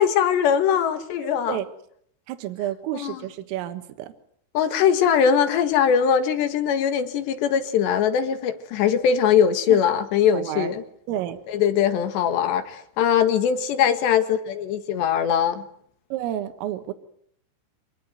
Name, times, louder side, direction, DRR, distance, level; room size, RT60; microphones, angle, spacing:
voice 1, 0.0-1.6 2.9-3.2 4.6-10.8 11.5-15.6, left 8 dB, 65° left, 10 dB, 3.7 m, -21 dB
voice 2, 1.2-1.7 2.3-4.1 9.7-9.8 10.3-10.7 11.1-11.4 16.1-16.9, right 12 dB, 85° right, 9 dB, 4.0 m, -30 dB
26.0 x 19.5 x 9.5 m, 0.68 s
omnidirectional pair, 5.9 m